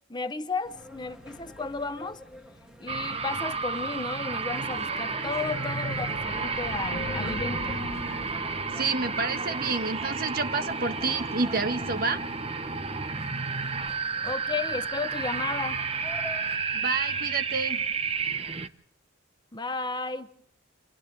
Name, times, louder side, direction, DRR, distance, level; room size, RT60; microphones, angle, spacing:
voice 1, 0.1-2.2 2.8-7.8 14.2-15.8 19.5-20.3, left 4 dB, 20° left, 0.8 m, -33 dB
sound 1, 0.7-16.6, left 1 dB, 5° right, 2.5 m, -46 dB
sound 2, 2.9-18.7, right 4 dB, 30° right, 0.9 m, -31 dB
sound 3, 4.0-9.6, left 1 dB, 50° left, 1.4 m, -40 dB
voice 2, 8.8-12.2 16.7-17.8, right 4 dB, 45° right, 1.4 m, -29 dB
29.5 x 27.0 x 3.4 m
head